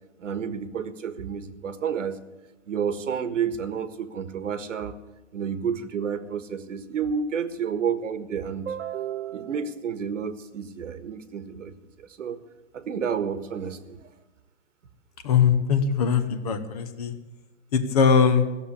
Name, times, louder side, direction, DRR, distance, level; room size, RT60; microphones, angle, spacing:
voice 1, 0.2-2.2 2.7-5.0 5.3-11.7 12.0-12.4 12.7-14.0, right 7 dB, 90° right, 11 dB, 1.7 m, -30 dB
voice 2, 15.2-17.1 17.7-18.5, left 6 dB, 30° left, 9 dB, 1.1 m, -21 dB
15.0 x 7.4 x 9.7 m, 1.1 s
hypercardioid pair, 170°, 36 cm